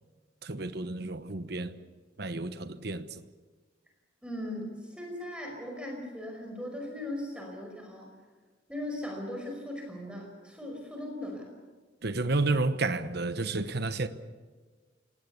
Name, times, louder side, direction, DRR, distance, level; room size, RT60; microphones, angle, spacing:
voice 1, 0.4-1.8 2.2-3.2 12.0-14.1, right 3 dB, 55° right, 1.1 m, -31 dB
voice 2, 4.2-8.1 8.7-11.5, left 1 dB, 5° right, 5.1 m, -38 dB
28.5 x 19.5 x 7.1 m
head